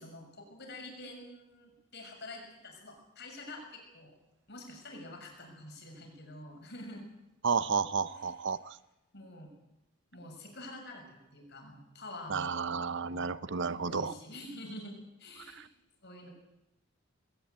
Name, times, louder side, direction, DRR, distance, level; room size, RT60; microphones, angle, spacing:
voice 1, 0.0-4.1 4.5-7.1 8.1-8.3 9.1-9.5 10.1-12.7 13.0-13.3 13.8-15.7 16.0-16.3, left 1 dB, 55° left, 3 dB, 6.7 m, -47 dB
voice 2, 7.4-8.8 12.3-14.1 15.5-15.7, right 5 dB, 60° right, 16 dB, 0.8 m, -32 dB
20.5 x 18.5 x 8.3 m, 0.90 s
head